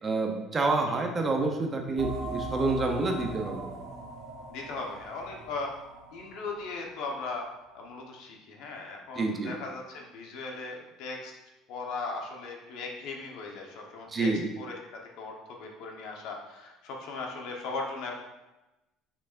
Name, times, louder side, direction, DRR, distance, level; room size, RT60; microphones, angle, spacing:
voice 1, 0.0-3.7 9.1-9.5 14.1-14.4, right 3 dB, 25° right, 3 dB, 0.7 m, -28 dB
sound 1, 2.0-7.3, right 2 dB, 55° right, 1.5 m, -39 dB
voice 2, 4.5-5.7 6.1-7.5 7.7-11.3 11.7-14.3 14.6-14.8 15.2-18.2, left 3 dB, 65° left, 1 dB, 1.1 m, -38 dB
6.4 x 6.0 x 2.6 m, 1.0 s
cardioid pair, 155°, 0 cm